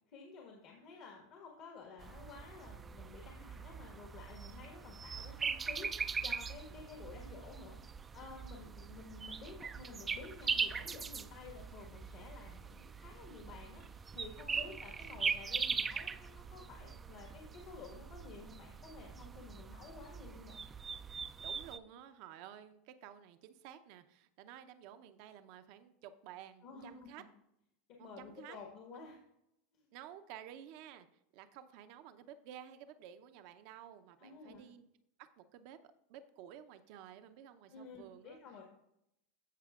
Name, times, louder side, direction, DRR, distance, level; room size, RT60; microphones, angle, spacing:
voice 1, 0.1-7.8 8.1-20.6 26.6-27.2 28.0-29.2 29.7-29.9 34.2-34.6 37.7-38.6, left 4 dB, 55° left, -1 dB, 1.6 m, -52 dB
sound 1, 2.0-21.8, right 5 dB, 25° right, 0.4 m, -41 dB
voice 2, 21.4-27.2 28.0-28.6 29.0-29.1 29.9-31.1 31.3-34.8 35.2-38.4, right 10 dB, 60° right, 10 dB, 0.7 m, -53 dB
14.0 x 5.6 x 2.4 m, 0.79 s
hypercardioid pair, 95°, 0 cm